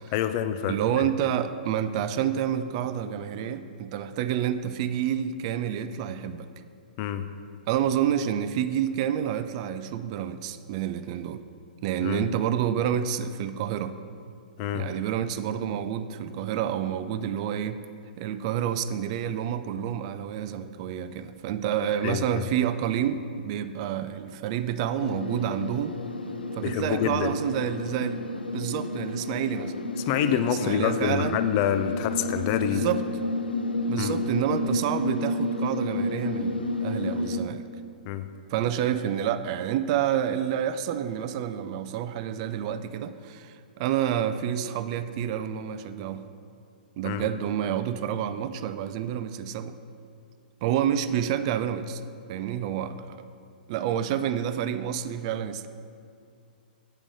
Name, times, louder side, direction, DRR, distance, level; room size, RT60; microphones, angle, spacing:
voice 1, 0.1-1.0 7.0-7.3 12.0-12.2 14.6-14.9 22.0-22.2 26.6-27.3 30.1-32.9 34.0-34.2 38.1-38.3 47.0-47.2, left 9 dB, 35° left, 10 dB, 0.4 m, -27 dB
voice 2, 0.7-6.5 7.7-11.4 11.8-13.9 14.7-17.8 18.2-26.0 26.5-28.2 28.5-29.7 30.3-31.4 32.6-33.0 33.9-37.6 38.5-46.2 47.0-49.7 50.6-52.0 52.3-53.2 53.7-55.7, right 9 dB, 40° right, 11 dB, 0.3 m, -29 dB
sound 1, 25.0-37.4, left 2 dB, 85° left, 0.5 m, -31 dB
8.8 x 3.7 x 6.1 m, 2.4 s
figure-of-eight pair, 115°, 5 cm